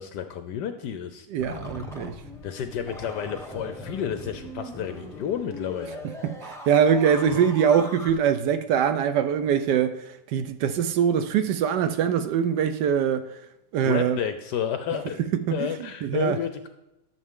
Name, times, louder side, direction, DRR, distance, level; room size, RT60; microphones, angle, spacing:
voice 1, 0.0-1.3 2.4-6.0 7.3-7.5 13.8-15.2 15.5-16.7, left 8 dB, 70° left, 1.0 m, -31 dB
voice 2, 1.3-2.1 6.2-10.0 10.3-13.3 13.7-14.2 15.5-15.6 16.0-16.4, right 8 dB, 75° right, 1.0 m, -23 dB
sound 1, 1.4-8.1, left 1 dB, ahead, 0.8 m, -39 dB
12.0 x 7.1 x 3.7 m
omnidirectional pair, 2.3 m